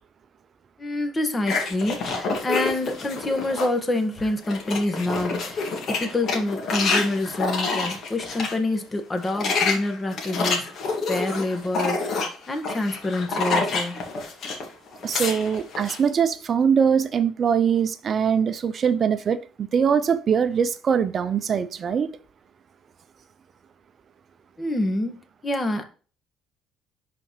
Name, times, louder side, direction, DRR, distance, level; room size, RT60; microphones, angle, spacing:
voice 1, 0.8-10.7 11.1-14.0 24.6-25.8, left 2 dB, 25° left, 1.6 m, -27 dB
sound 1, 1.5-3.8 4.2-8.6 9.1-14.7 14.9-16.0, left 4 dB, 60° left, 2.1 m, -28 dB
voice 2, 15.0-22.1, right 7 dB, 50° right, 0.5 m, -22 dB
10.5 x 4.2 x 3.2 m
hypercardioid pair, 60°, 0 cm